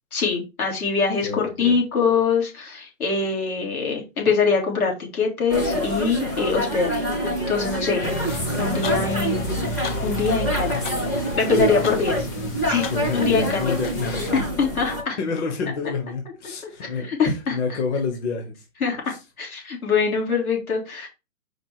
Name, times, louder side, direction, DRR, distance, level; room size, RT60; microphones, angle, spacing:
voice 1, 0.1-9.7 10.0-10.8 11.3-12.2 12.7-12.9 13.1-13.7 14.1-15.2 16.8-17.6 18.8-21.1, left 5 dB, 90° left, 0 dB, 3.3 m, -24 dB
voice 2, 1.2-1.8 10.7-10.8 11.6-12.5 12.9-14.5 15.2-18.6 19.1-19.2, left 4 dB, 50° left, 4 dB, 1.4 m, -29 dB
sound 1, 5.5-15.0, equal, 15° left, 0.4 m, -26 dB
sound 2, 8.0-14.3, left 1 dB, 35° left, 1.0 m, -33 dB
5.1 x 4.0 x 4.7 m, 0.27 s
hypercardioid pair, 155°, 43 cm